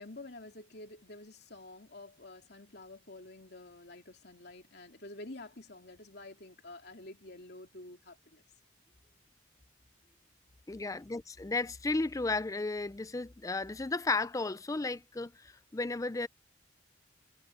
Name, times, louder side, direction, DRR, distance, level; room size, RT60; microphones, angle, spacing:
voice 1, 0.0-8.4, left 2 dB, 55° left, 3.1 m, -49 dB
voice 2, 10.7-16.3, left 3 dB, 15° left, 0.4 m, -34 dB
head